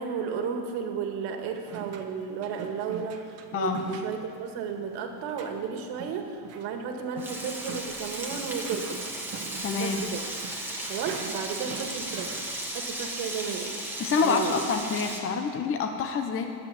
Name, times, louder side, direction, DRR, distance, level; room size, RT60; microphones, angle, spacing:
voice 1, 0.0-9.0 9.7-10.2 10.8-12.4 12.7-13.7 14.2-14.6, right 6 dB, 80° right, 4 dB, 1.9 m, -33 dB
sound 1, 1.7-12.5, right 6 dB, 40° right, 1.2 m, -44 dB
Frying (food), 7.2-15.2, right 1 dB, 5° right, 1.7 m, -35 dB
voice 2, 9.6-10.0 14.0-16.5, left 5 dB, 35° left, 4 dB, 0.9 m, -27 dB
12.0 x 8.5 x 9.8 m, 2.3 s
cardioid pair, 155°, 40 cm